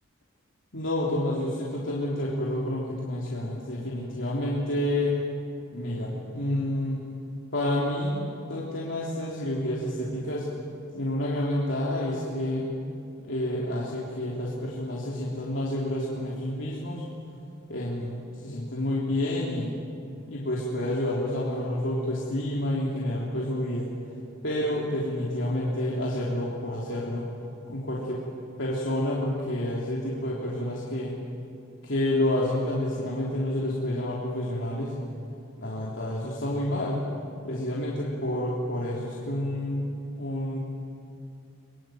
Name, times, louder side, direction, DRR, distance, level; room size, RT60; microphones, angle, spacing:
voice 1, 0.7-5.2 5.7-7.0 7.5-10.5 10.9-12.7 13.2-17.0 17.7-19.8 20.3-23.9 24.4-27.3 27.7-28.2 28.6-31.2 31.8-34.9 35.6-37.0 37.4-40.6, left 1 dB, 70° left, -5 dB, 3.4 m, -29 dB
24.0 x 22.5 x 9.1 m, 2.6 s
head